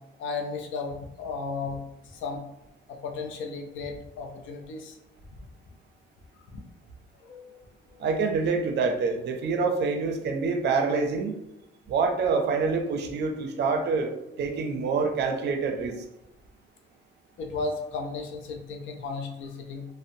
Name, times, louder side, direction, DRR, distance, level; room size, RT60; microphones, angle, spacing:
voice 1, 0.2-2.4 2.9-5.0 6.5-6.6 7.2-7.6 7.9-8.1 17.4-19.9, left 4 dB, 75° left, 3 dB, 0.5 m, -35 dB
voice 2, 8.0-11.4 11.9-16.0, right 4 dB, 60° right, 5 dB, 0.5 m, -26 dB
2.5 x 2.0 x 2.6 m, 0.86 s
cardioid pair, 90°, 20 cm